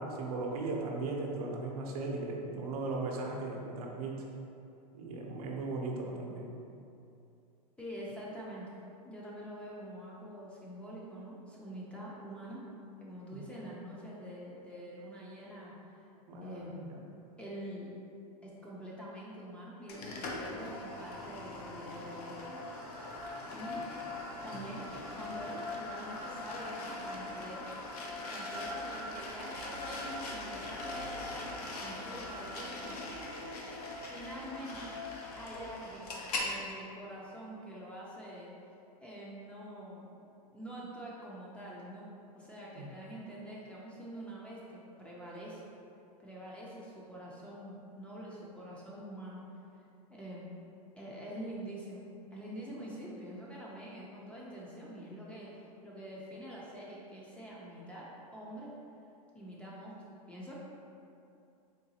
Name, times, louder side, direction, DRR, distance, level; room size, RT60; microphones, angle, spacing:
voice 1, 0.0-4.2 4.9-6.5 13.3-13.4 16.3-17.0 42.8-42.9, right 3 dB, 70° right, -1 dB, 0.6 m, -37 dB
voice 2, 7.8-8.7 9.0-12.6 13.0-15.7 16.4-17.0 17.4-17.9 18.4-22.6 23.5-23.8 24.4-27.7 28.3-33.4 34.0-34.9 35.4-36.1 36.3-40.1 40.5-42.1 42.3-45.6 46.2-49.4 50.1-50.5 51.0-58.1 58.3-58.7 59.3-59.9 60.3-60.5, right 1 dB, 5° left, -6 dB, 0.4 m, -46 dB
sound 1, 19.9-36.5, left 2 dB, 75° left, 0.6 m, -41 dB
3.8 x 2.3 x 2.7 m, 2.7 s
hypercardioid pair, 125°, 20 cm